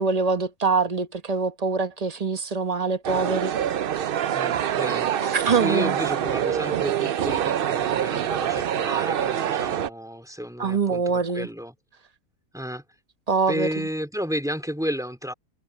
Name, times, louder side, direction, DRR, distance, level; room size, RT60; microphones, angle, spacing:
voice 1, 0.0-3.5 5.2-5.9 10.6-11.5 13.3-13.9, right 4 dB, 30° right, 1.0 m, -24 dB
sound 1, 3.0-9.9, right 10 dB, 70° right, 0.5 m, -25 dB
voice 2, 4.3-11.7 12.5-12.8 13.5-15.3, equal, ahead, 3.6 m, -32 dB
omnidirectional pair, 1.6 m